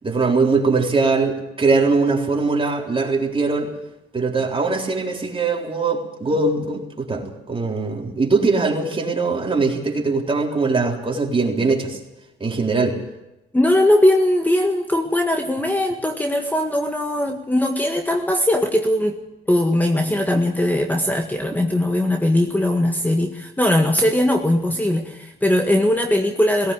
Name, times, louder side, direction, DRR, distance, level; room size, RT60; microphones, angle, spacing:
voice 1, 0.0-3.7 4.1-12.0 12.4-13.0, right 3 dB, 25° right, 0 dB, 3.9 m, -21 dB
voice 2, 13.5-19.2 19.5-26.7, left 1 dB, 10° left, 4 dB, 1.7 m, -20 dB
18.0 x 17.5 x 8.4 m, 0.96 s
cardioid pair, 90°, 20 cm